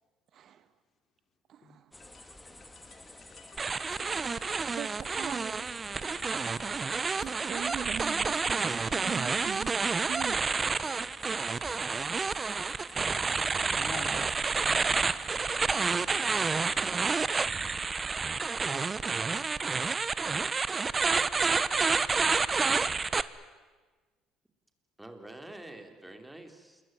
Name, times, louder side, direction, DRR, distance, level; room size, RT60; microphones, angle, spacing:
voice 1, 0.3-0.7 1.5-1.9 4.7-5.7 7.2-9.7 10.1-10.5, right 9 dB, 55° right, 12 dB, 1.6 m, -41 dB
voice 2, 1.6-4.2 10.9-11.0 13.7-14.1, left 5 dB, 45° left, 8 dB, 3.1 m, -49 dB
sound 1, 1.9-16.8, left 1 dB, 10° left, 2.4 m, -52 dB
sound 2, 3.6-23.2, right 4 dB, 25° right, 1.1 m, -29 dB
voice 3, 21.2-23.0 25.0-26.8, right 1 dB, 5° right, 5 dB, 4.2 m, -49 dB
28.0 x 22.0 x 9.4 m, 1.4 s
supercardioid pair, 95°, 0 cm